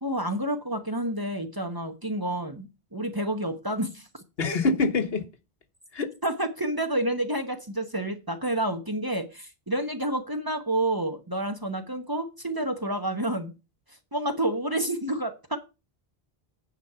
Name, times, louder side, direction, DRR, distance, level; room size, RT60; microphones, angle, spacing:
voice 1, 0.0-4.1 6.2-13.5 14.1-15.6, right 1 dB, 20° right, 1.0 m, -29 dB
voice 2, 4.4-5.2 5.9-6.1, left 3 dB, 75° left, 1.5 m, -24 dB
9.3 x 4.7 x 6.8 m
omnidirectional pair, 1.0 m